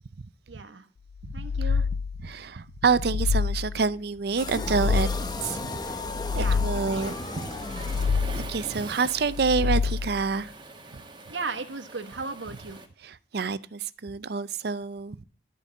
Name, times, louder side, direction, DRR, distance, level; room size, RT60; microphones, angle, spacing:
voice 1, 0.5-0.9 1.3-1.8 6.1-6.6 6.9-7.1 11.3-12.8, right 4 dB, 75° right, 1.3 m, -36 dB
sound 1, 1.2-2.3 2.8-3.9 4.4-5.5 6.0-7.1 7.6-8.7 9.2-10.3, left 5 dB, 85° left, 0.5 m, -28 dB
voice 2, 1.2-1.7 2.2-5.1 5.4-6.0 6.3-7.6 8.4-10.5 13.0-15.2, right 4 dB, 60° right, 0.5 m, -28 dB
sound 2, 4.4-8.6, left 2 dB, 20° left, 1.1 m, -35 dB
Waves surf, 7.0-12.9, right 2 dB, 25° right, 1.7 m, -43 dB
13.0 x 5.3 x 8.2 m
head